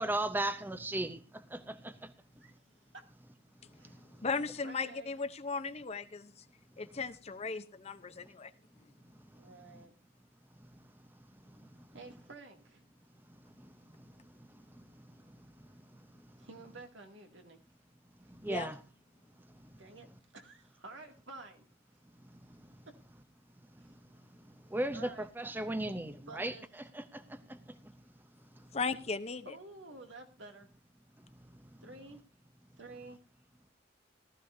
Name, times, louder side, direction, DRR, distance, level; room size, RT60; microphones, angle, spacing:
voice 1, 0.0-2.1 3.8-4.6 9.3-9.9 10.6-10.8 11.5-12.2 13.3-16.8 18.3-18.9 19.5-20.2 22.3-23.2 23.7-28.0 28.5-28.7 31.2-32.1 33.1-33.2, right 1 dB, 10° right, 0.6 m, -41 dB
voice 2, 3.8-6.4 6.8-8.5 18.4-18.7 28.7-29.5, left 4 dB, 35° left, 0.7 m, -37 dB
voice 3, 4.6-5.1 9.3-9.9 11.9-12.9 16.4-17.6 19.8-21.7 23.8-23.9 24.9-25.3 26.3-26.7 29.4-30.7 31.8-32.2 32.8-33.2, right 3 dB, 80° right, 2.3 m, -51 dB
18.5 x 13.5 x 2.7 m
head